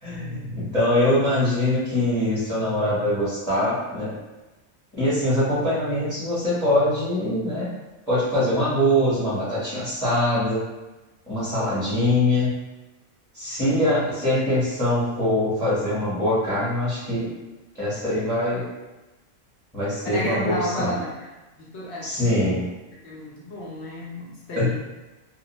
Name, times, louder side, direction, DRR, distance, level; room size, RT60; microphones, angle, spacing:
voice 1, 0.0-4.2 4.9-7.7 8.1-10.6 11.3-12.5 13.3-17.3 17.7-18.6 19.7-20.9 22.0-22.7 24.6-24.7, left 1 dB, 5° left, -10 dB, 0.9 m, -23 dB
voice 2, 20.0-21.3 21.6-22.3 23.0-24.7, left 1 dB, 60° left, -5 dB, 0.8 m, -31 dB
2.5 x 2.1 x 2.9 m, 1.1 s
omnidirectional pair, 1.5 m